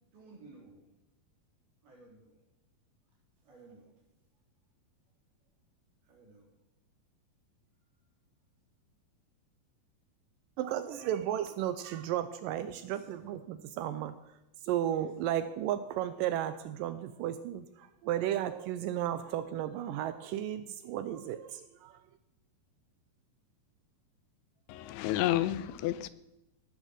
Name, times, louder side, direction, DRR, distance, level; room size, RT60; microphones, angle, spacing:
voice 1, 0.1-0.9 1.8-2.3 3.5-3.9 6.1-6.4 10.9-11.3 12.5-13.3 14.9-15.1, right 3 dB, 70° right, 5.9 m, -54 dB
voice 2, 10.6-22.0, right 11 dB, 90° right, 1.9 m, -34 dB
voice 3, 24.7-26.1, left 14 dB, 85° left, 2.6 m, -30 dB
18.5 x 6.3 x 6.5 m
omnidirectional pair, 4.5 m